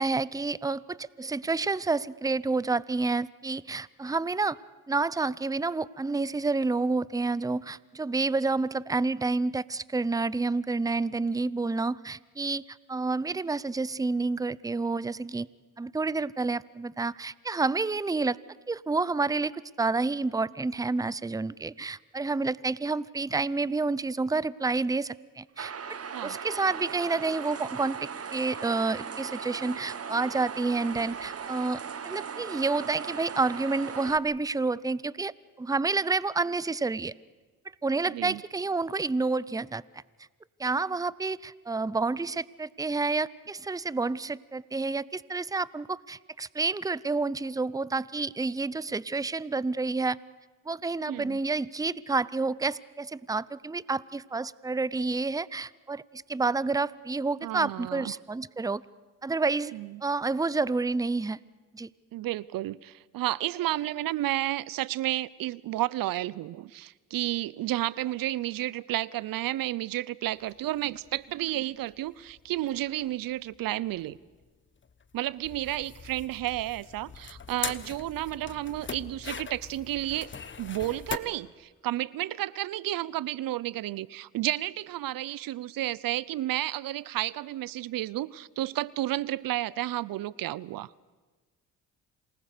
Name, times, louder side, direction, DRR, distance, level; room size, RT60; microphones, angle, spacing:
voice 1, 0.0-4.6 4.9-12.6 12.9-15.5 15.8-18.4 18.7-35.3 35.6-37.1 37.8-40.0 40.6-50.2 50.7-58.8 59.2-59.7 60.0-61.4 61.7-61.9, right 3 dB, 10° right, 20 dB, 0.6 m, -29 dB
sound 1, 25.6-34.2, right 6 dB, 45° right, 1.4 m, -38 dB
voice 2, 51.1-51.4 57.4-58.1 59.7-60.0 62.1-74.2 75.1-80.3 80.6-90.9, right 15 dB, 75° right, 22 dB, 0.6 m, -32 dB
sound 2, 70.4-81.2, left 6 dB, 35° left, 1.2 m, -41 dB
27.5 x 19.5 x 6.7 m, 1.3 s
cardioid pair, 65°, 34 cm